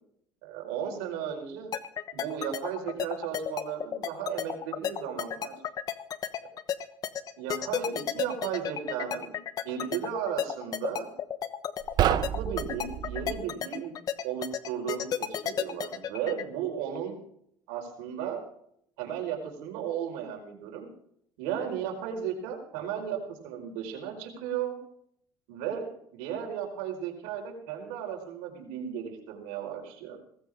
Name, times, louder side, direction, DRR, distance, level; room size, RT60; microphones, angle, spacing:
voice 1, 0.4-1.7 2.1-5.6 7.4-11.1 12.0-13.9 14.2-17.2 17.7-18.4 19.0-20.9 21.4-24.8 25.5-30.2, right 8 dB, 90° right, 2 dB, 4.8 m, -35 dB
sound 1, 1.7-16.4, left 9 dB, 45° left, 1.2 m, -32 dB
sound 2, 11.8-13.4, right 11 dB, 50° right, 0.8 m, -28 dB
18.5 x 15.5 x 3.6 m, 0.69 s
cardioid pair, 110°, 9 cm